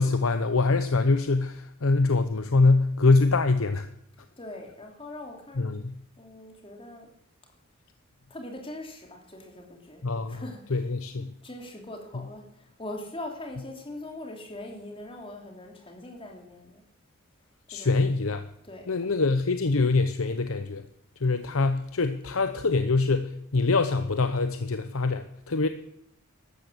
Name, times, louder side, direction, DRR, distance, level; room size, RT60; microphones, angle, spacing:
voice 1, 0.0-3.9 5.6-5.9 10.0-10.4 10.7-11.3 17.7-18.5 18.9-20.9 21.2-25.7, left 3 dB, 70° left, 9 dB, 0.9 m, -24 dB
voice 2, 4.4-5.7 6.2-7.1 8.3-10.9 11.2-16.8 17.7-18.0 18.6-19.0, left 1 dB, 25° left, 2 dB, 3.2 m, -42 dB
13.5 x 12.0 x 7.9 m, 0.72 s
head